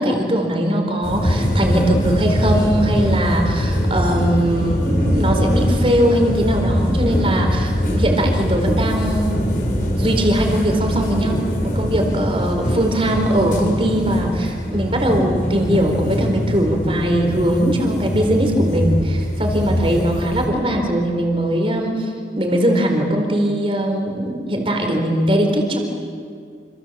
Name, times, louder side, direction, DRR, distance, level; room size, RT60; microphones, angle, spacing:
voice 1, 0.0-9.4 10.0-22.1 22.4-25.8, equal, 30° right, 3 dB, 4.1 m, -20 dB
sound 1, 1.0-20.5, equal, 50° left, 7.4 m, -22 dB
28.0 x 27.5 x 7.4 m, 2.2 s
head